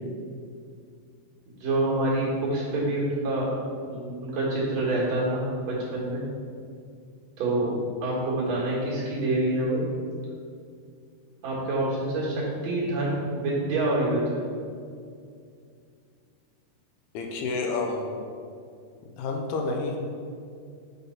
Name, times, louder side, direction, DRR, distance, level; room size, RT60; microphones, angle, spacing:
voice 1, 1.6-3.5 3.9-6.2 7.4-7.7 8.0-9.8 11.4-14.4, right 2 dB, 55° right, -6 dB, 2.0 m, -26 dB
voice 2, 17.1-18.2 19.2-20.0, left 3 dB, 80° left, 1 dB, 2.4 m, -29 dB
9.4 x 3.8 x 5.6 m, 2.3 s
omnidirectional pair, 5.2 m